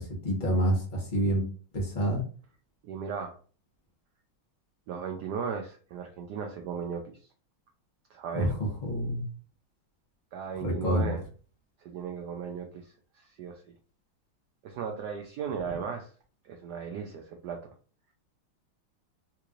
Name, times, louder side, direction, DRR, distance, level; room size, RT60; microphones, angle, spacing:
voice 1, 0.0-1.4 1.7-2.2 8.3-8.5 8.8-9.2 10.6-11.2 15.7-15.8, right 1 dB, 35° left, -1 dB, 0.9 m, -27 dB
voice 2, 2.8-3.4 4.9-7.2 8.1-8.6 10.3-11.2 11.8-13.6 14.6-16.1 16.4-17.7, right 6 dB, 90° right, 3 dB, 0.9 m, -36 dB
3.7 x 3.0 x 2.4 m, 0.39 s
omnidirectional pair, 2.3 m